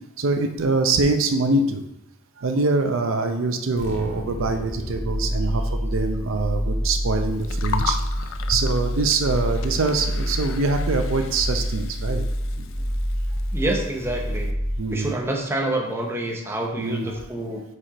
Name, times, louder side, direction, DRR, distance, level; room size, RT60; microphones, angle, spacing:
voice 1, 0.2-1.9 2.4-8.0 8.5-12.2 12.6-12.7 14.8-15.2 16.8-17.1, right 3 dB, 70° right, 6 dB, 0.5 m, -24 dB
sound 1, 3.7-15.2, equal, 35° left, 1.6 m, -27 dB
Gurgling, 7.3-14.5, left 6 dB, 65° left, 0.4 m, -36 dB
voice 2, 13.5-14.5 14.9-17.6, right 1 dB, 10° right, 0 dB, 0.8 m, -27 dB
4.8 x 4.3 x 4.9 m, 0.87 s
head